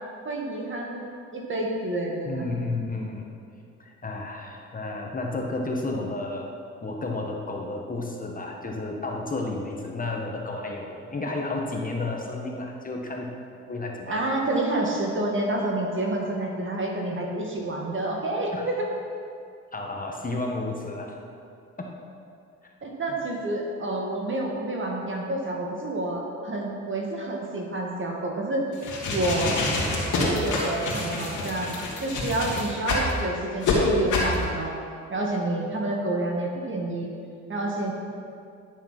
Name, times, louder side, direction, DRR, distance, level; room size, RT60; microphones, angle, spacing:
voice 1, 0.2-1.0 1.3-2.5 14.1-18.9 22.8-28.6 29.1-29.6 30.1-34.7 35.1-37.1 37.5-37.9, right 2 dB, 40° right, 0 dB, 2.1 m, -29 dB
voice 2, 2.2-3.2 3.8-6.5 6.8-13.3 13.7-14.2 18.5-18.6 19.7-21.2 21.8-21.9 22.6-22.7, left 2 dB, 30° left, 0 dB, 1.5 m, -32 dB
sound 1, 28.7-33.1 33.6-33.8 34.1-34.3, left 3 dB, 85° left, 2.6 m, -27 dB
12.0 x 7.1 x 5.8 m, 2.5 s
cardioid pair, 90°, 30 cm